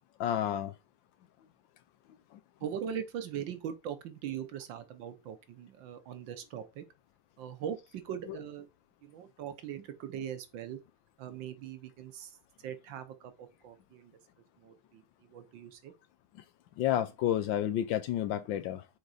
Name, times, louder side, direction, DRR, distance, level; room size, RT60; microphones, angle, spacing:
voice 1, 0.2-0.7 2.3-2.4 8.3-8.4 16.8-18.9, left 11 dB, 75° left, 1.2 m, -30 dB
voice 2, 2.6-6.8 7.4-8.7 9.0-10.8 11.2-12.3 12.6-14.1 14.6-15.0 15.3-15.9, right 9 dB, 70° right, 1.4 m, -41 dB
6.5 x 3.8 x 4.8 m
omnidirectional pair, 2.4 m